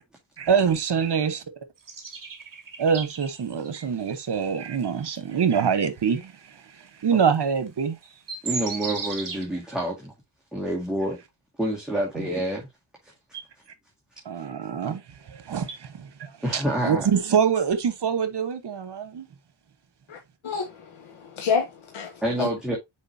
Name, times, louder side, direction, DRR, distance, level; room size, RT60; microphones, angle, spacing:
voice 1, 0.4-1.4 2.8-8.0 12.2-12.3 14.2-15.0 15.3-19.3, right 7 dB, 60° right, 1.4 m, -25 dB
sound 1, 1.9-3.8 4.4-4.5 5.0-5.2 6.1-6.3 7.7-7.8 8.0-9.5, right 4 dB, 45° right, 1.7 m, -35 dB
voice 2, 8.4-10.1 10.5-11.2 11.6-12.7 13.0-13.1 16.4-17.1 22.2-22.8, right 1 dB, ahead, 2.1 m, -27 dB
voice 3, 20.4-22.5, left 6 dB, 80° left, 1.2 m, -29 dB
6.5 x 5.0 x 2.8 m
cardioid pair, 95°, 47 cm